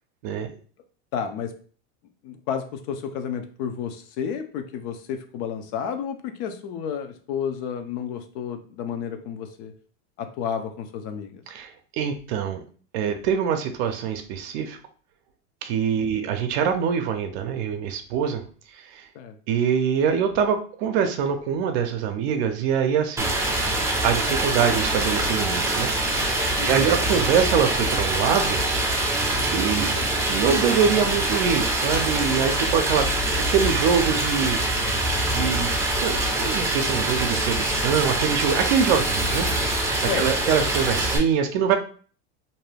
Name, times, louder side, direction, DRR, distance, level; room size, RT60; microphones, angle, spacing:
voice 1, 1.1-1.5 2.2-9.7 10.2-11.4 16.0-16.2 19.1-19.4 26.6-26.9 29.9-30.1 40.1-40.3, left 7 dB, 60° left, 7 dB, 0.6 m, -31 dB
voice 2, 11.5-12.6 12.9-14.8 15.6-18.4 18.7-19.1 19.5-23.3 24.0-25.9 26.6-28.6 29.4-29.9 30.3-33.1 33.3-34.6 35.2-39.8 40.1-41.8, right 7 dB, 60° right, 6 dB, 0.5 m, -24 dB
Stream, 23.2-41.2, right 1 dB, 10° right, 0.5 m, -24 dB
2.6 x 2.2 x 3.2 m, 0.42 s
supercardioid pair, 130°, 35 cm